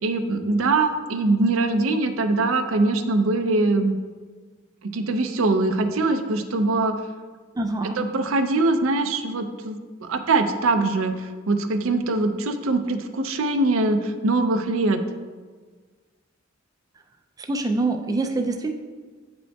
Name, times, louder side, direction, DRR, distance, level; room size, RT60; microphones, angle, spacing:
voice 1, 0.0-4.0 4.8-7.0 8.0-11.2 11.5-15.0, right 2 dB, 80° right, 7 dB, 0.5 m, -22 dB
voice 2, 7.6-8.0 17.4-18.7, right 2 dB, 20° right, 4 dB, 0.3 m, -25 dB
8.9 x 5.2 x 2.3 m, 1.5 s
head